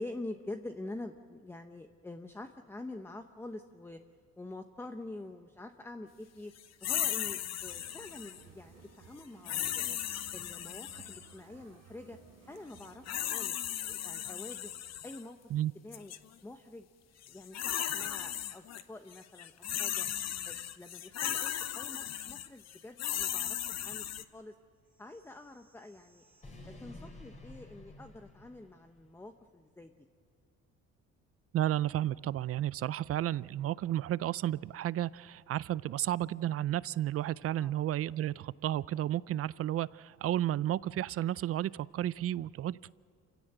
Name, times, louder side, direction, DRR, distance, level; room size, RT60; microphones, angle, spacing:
voice 1, 0.0-4.0 4.4-6.5 6.8-10.0 10.3-12.2 12.5-13.6 13.8-14.7 15.0-15.4 15.7-16.1 16.4-16.9 17.3-20.1 20.4-24.1 24.3-24.5 25.0-26.2 26.6-29.9 37.6-37.7, left 2 dB, 10° left, 6 dB, 0.8 m, -46 dB
sound 1, 6.8-8.4 9.5-11.3 12.8-15.2 15.9-16.2 17.2-18.8 19.1-24.2, left 11 dB, 60° left, 1.0 m, -36 dB
sound 2, 7.7-13.2, right 6 dB, 85° right, 3.4 m, -57 dB
sound 3, 24.9-29.2, left 1 dB, 25° left, 3.8 m, -53 dB
voice 2, 31.5-42.9, right 12 dB, 50° right, 20 dB, 0.5 m, -32 dB
28.0 x 16.5 x 8.0 m, 2.2 s
cardioid pair, 125°, 30 cm